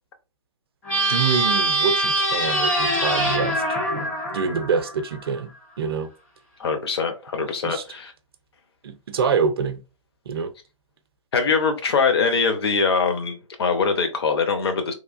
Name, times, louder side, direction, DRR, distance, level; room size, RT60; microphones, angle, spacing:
sound 1, 0.8-5.3, right 1 dB, 10° left, 0.5 m, -23 dB
voice 1, 1.1-3.6 4.3-5.5 5.8-6.1 7.4-7.8 8.8-9.8 10.3-10.5, right 6 dB, 45° right, 0.5 m, -25 dB
voice 2, 6.6-8.1 11.3-14.9, left 5 dB, 50° left, 0.7 m, -22 dB
3.1 x 2.3 x 2.4 m
figure-of-eight pair, 130°, 17 cm